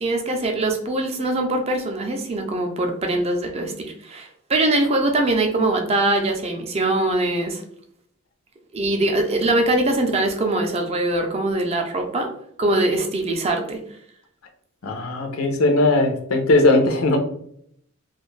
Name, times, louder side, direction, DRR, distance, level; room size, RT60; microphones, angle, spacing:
voice 1, 0.0-7.6 8.7-12.3 12.6-13.8, right 2 dB, 30° right, 4 dB, 0.4 m, -22 dB
voice 2, 14.8-17.2, left 2 dB, 90° left, 4 dB, 0.6 m, -18 dB
2.5 x 2.3 x 3.1 m, 0.67 s
head